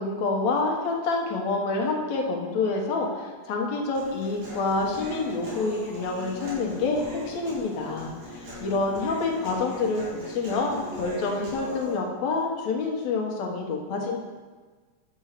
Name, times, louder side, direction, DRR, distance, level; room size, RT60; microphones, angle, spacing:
voice 1, 0.0-14.2, left 3 dB, 70° left, 0 dB, 2.5 m, -27 dB
Human voice, 4.0-12.0, left 1 dB, 65° right, 4.1 m, -39 dB
10.0 x 5.4 x 6.7 m, 1.4 s
omnidirectional pair, 3.3 m